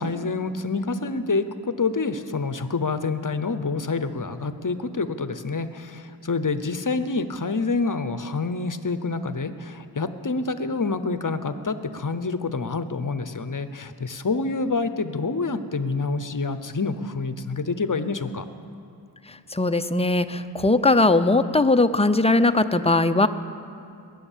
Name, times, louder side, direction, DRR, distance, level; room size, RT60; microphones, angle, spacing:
voice 1, 0.0-18.5, left 3 dB, 45° left, 11 dB, 0.8 m, -27 dB
voice 2, 19.3-23.3, left 2 dB, 15° left, 9 dB, 0.6 m, -20 dB
20.0 x 9.4 x 7.4 m, 2.6 s
wide cardioid pair, 50°, 43 cm